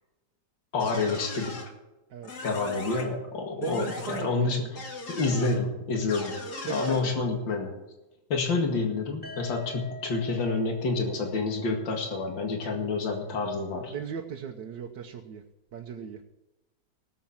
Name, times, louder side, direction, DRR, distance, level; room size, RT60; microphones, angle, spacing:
voice 1, 0.7-1.5 2.4-4.6 5.1-6.4 6.7-7.7 8.3-13.9, left 3 dB, 75° left, 2 dB, 2.7 m, -28 dB
sound 1, 0.8-1.7 2.2-3.0 3.6-4.2 4.7-5.6 6.1-7.0, left 3 dB, 60° left, 2.7 m, -39 dB
voice 2, 3.5-4.8 6.7-7.3 13.9-15.4 15.7-16.2, right 7 dB, 70° right, 3 dB, 1.6 m, -37 dB
sound 2, 9.2-13.1, left 2 dB, 5° left, 2.1 m, -46 dB
18.5 x 7.4 x 7.3 m, 1.0 s
omnidirectional pair, 2.0 m